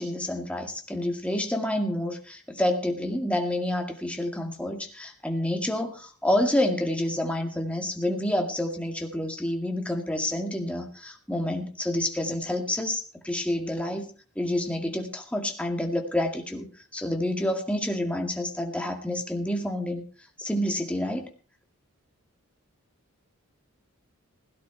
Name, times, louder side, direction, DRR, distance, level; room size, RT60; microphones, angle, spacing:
voice 1, 0.0-14.0 14.4-16.7 16.9-20.0 20.4-21.3, left 1 dB, 5° left, 3 dB, 2.0 m, -28 dB
17.0 x 11.0 x 4.5 m, 0.37 s
head